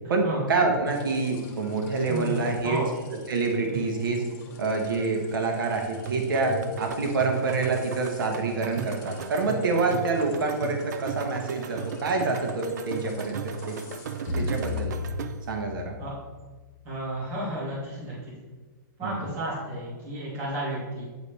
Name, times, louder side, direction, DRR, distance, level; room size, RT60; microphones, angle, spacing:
voice 1, 0.1-2.8 3.3-4.2 4.6-13.8 14.4-14.9 15.5-16.0 19.0-19.2, right 3 dB, 80° right, 3 dB, 1.1 m, -27 dB
sound 1, 0.9-14.8, equal, 45° left, 1.6 m, -42 dB
voice 2, 2.1-2.9 3.7-3.8 16.0-16.1 16.8-18.2 19.0-21.0, right 1 dB, 20° right, -9 dB, 2.0 m, -32 dB
sound 2, 6.1-15.6, right 7 dB, 55° right, 0.4 m, -36 dB
sound 3, 14.3-17.0, left 3 dB, 15° left, 2.0 m, -34 dB
9.1 x 4.1 x 3.3 m, 1.3 s
hypercardioid pair, 170°, 11 cm